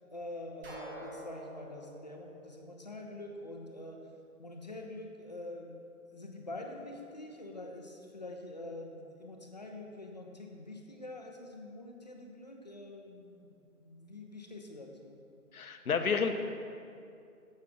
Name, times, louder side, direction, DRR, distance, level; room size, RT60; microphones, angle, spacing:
voice 1, 0.1-4.0 4.4-5.8 6.1-13.4 13.7-15.2, left 2 dB, 30° left, 2 dB, 0.6 m, -45 dB
sound 1, 0.6-3.4, right 1 dB, 40° right, 1.6 m, -48 dB
voice 2, 15.5-16.4, left 5 dB, 70° left, 8 dB, 0.8 m, -30 dB
9.5 x 7.3 x 3.8 m, 2.5 s
figure-of-eight pair, 145°, 44 cm